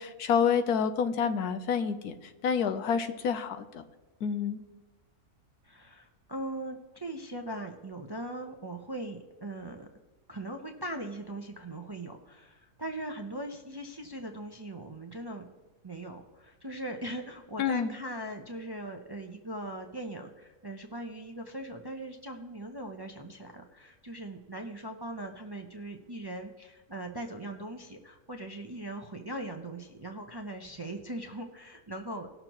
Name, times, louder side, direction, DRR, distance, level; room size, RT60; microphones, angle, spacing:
voice 1, 0.0-2.1 2.4-3.8 4.2-4.6 17.6-17.9, left 7 dB, 90° left, 9 dB, 1.3 m, -28 dB
voice 2, 5.6-9.9 10.3-15.5 15.8-32.3, right 1 dB, 25° right, 3 dB, 0.5 m, -40 dB
19.0 x 6.7 x 3.0 m, 1.2 s
omnidirectional pair, 1.6 m